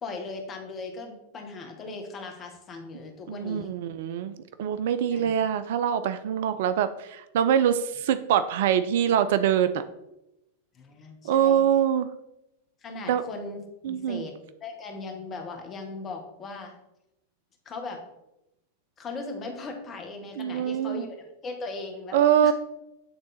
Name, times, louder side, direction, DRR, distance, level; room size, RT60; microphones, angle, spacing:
voice 1, 0.0-3.7 5.1-5.3 10.7-11.6 12.8-13.6 13.9-14.4 14.6-16.7 17.6-18.0 19.0-21.2 21.4-22.2 22.4-22.5, left 3 dB, 25° left, 3 dB, 1.3 m, -38 dB
voice 2, 3.3-4.3 4.6-9.8 11.2-12.1 13.1-13.2 13.8-14.2 20.4-21.0 22.1-22.5, right 9 dB, 55° right, 12 dB, 0.3 m, -24 dB
8.5 x 3.5 x 4.2 m, 0.89 s
figure-of-eight pair, 90°, 0 cm